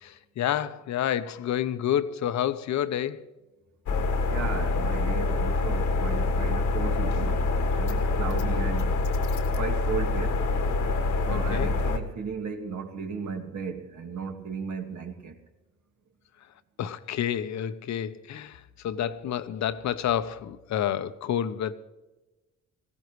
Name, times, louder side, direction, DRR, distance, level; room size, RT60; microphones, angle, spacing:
voice 1, 0.0-3.2 11.3-11.7 16.8-21.7, left 10 dB, 65° left, 0.9 m, -29 dB
sound 1, 3.9-12.0, left 3 dB, 80° left, 1.6 m, -26 dB
voice 2, 4.3-9.0 9.4-10.4 11.3-15.4, right 5 dB, 70° right, 2.2 m, -35 dB
20.0 x 16.0 x 3.2 m
cardioid pair, 90°, 30 cm